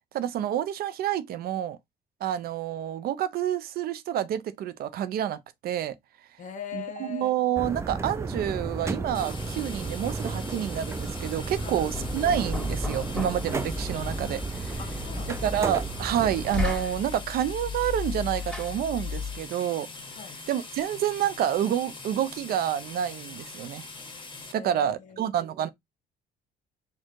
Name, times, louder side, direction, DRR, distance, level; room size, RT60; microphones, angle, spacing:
voice 1, 0.1-1.8 2.2-5.9 6.7-14.8 15.4-19.9 20.5-23.8 24.5-25.7, right 10 dB, 65° right, 0.6 m, -28 dB
voice 2, 6.4-7.4 11.6-11.8 14.8-15.4 20.1-20.4 24.5-25.3, left 7 dB, 45° left, 1.4 m, -40 dB
sound 1, 7.6-16.8, right 4 dB, 15° right, 0.5 m, -33 dB
sound 2, 9.1-24.5, left 3 dB, 30° left, 1.6 m, -43 dB
Knock, 11.6-19.5, left 5 dB, 5° left, 2.1 m, -35 dB
4.5 x 2.4 x 4.6 m
cardioid pair, 110°, 17 cm